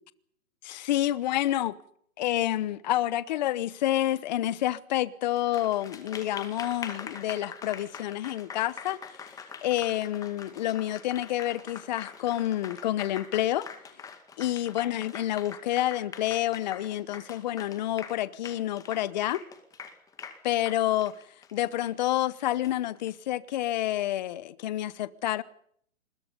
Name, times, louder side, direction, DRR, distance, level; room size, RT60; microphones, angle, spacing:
voice 1, 0.6-1.8 2.2-9.0 9.6-13.7 14.4-19.4 20.4-21.1 21.5-25.4, left 13 dB, 30° left, 1.0 m, -28 dB
Applause, 5.4-23.1, left 6 dB, 10° left, 2.0 m, -44 dB
27.5 x 21.5 x 5.3 m
hypercardioid pair, 160°, 41 cm